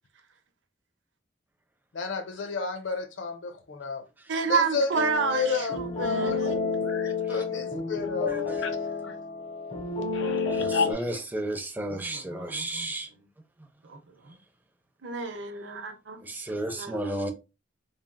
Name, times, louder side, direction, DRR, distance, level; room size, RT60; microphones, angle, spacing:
voice 1, 1.9-4.0 4.5-5.0 5.3-6.4 6.8-8.7 9.0-9.1 10.1-11.2, left 4 dB, 75° left, 0.6 m, -31 dB
voice 2, 4.3-6.9 11.9-12.9 13.8-14.0 14.2-14.4 15.0-16.5 16.8-17.2, right 5 dB, 75° right, 0.7 m, -31 dB
sound 1, 4.9-10.9, left 4 dB, 35° left, 1.0 m, -30 dB
voice 3, 8.3-8.6 10.5-13.1 16.2-17.3, right 1 dB, 10° right, 0.5 m, -33 dB
3.3 x 2.4 x 2.2 m
head